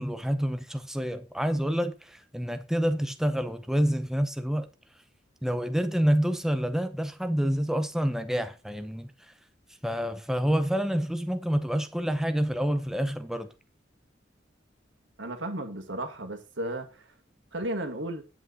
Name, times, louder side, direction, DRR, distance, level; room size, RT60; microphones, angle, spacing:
voice 1, 0.0-4.7 5.4-9.1 9.8-13.5, equal, 5° right, 0.7 m, -28 dB
voice 2, 15.2-17.1 17.5-18.2, right 1 dB, 75° right, 2.1 m, -34 dB
9.8 x 8.3 x 4.1 m
head